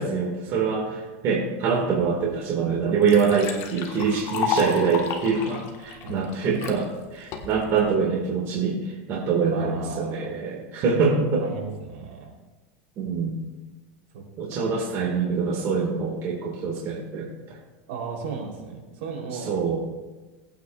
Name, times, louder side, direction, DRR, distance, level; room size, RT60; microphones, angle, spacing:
voice 1, 0.0-11.4 13.0-13.4 14.4-17.6 19.5-19.8, right 5 dB, 40° right, -2 dB, 2.0 m, -25 dB
Liquid, 2.3-2.4 2.7-6.8 7.3-7.8, left 7 dB, 45° left, 1.5 m, -31 dB
voice 2, 6.0-6.4 9.5-10.3 11.4-12.3 14.1-14.2 14.5-14.8 17.9-19.5, right 5 dB, 70° right, -1 dB, 3.6 m, -36 dB
20.0 x 9.0 x 2.5 m, 1.2 s
supercardioid pair, 130°, 7 cm